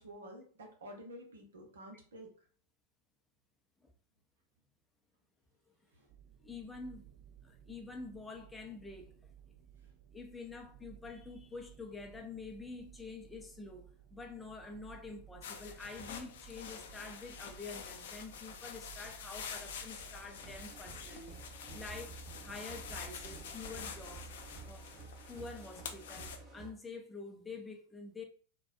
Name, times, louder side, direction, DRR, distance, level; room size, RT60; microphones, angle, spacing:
voice 1, 0.0-2.3 5.9-6.1, equal, 65° right, 0.9 m, -50 dB
sound 1, 6.1-24.7, right 10 dB, 40° right, 0.6 m, -58 dB
voice 2, 6.4-7.1 7.4-9.2 10.1-21.4 21.7-24.9 25.3-28.2, left 3 dB, 10° left, 0.5 m, -47 dB
sound 2, 15.4-26.4, left 6 dB, 55° left, 0.5 m, -47 dB
sound 3, 20.2-26.7, right 3 dB, 25° right, 1.1 m, -51 dB
4.0 x 2.2 x 2.6 m
figure-of-eight pair, 90°, 0 cm